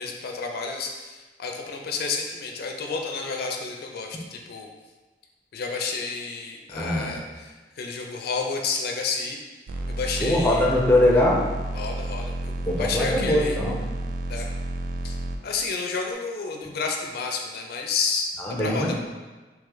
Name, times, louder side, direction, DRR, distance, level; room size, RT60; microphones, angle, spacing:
voice 1, 0.0-4.7 5.5-9.4 9.9-10.7 11.7-13.6 14.3-14.5 15.0-15.2 15.4-18.9, left 4 dB, 60° left, 2 dB, 0.4 m, -30 dB
voice 2, 6.7-7.2 10.2-11.4 12.7-13.8 18.4-18.9, left 1 dB, 10° left, -2 dB, 0.5 m, -21 dB
sound 1, 9.7-15.4, right 1 dB, 55° right, 0.3 m, -31 dB
3.1 x 2.9 x 3.7 m, 1.3 s
head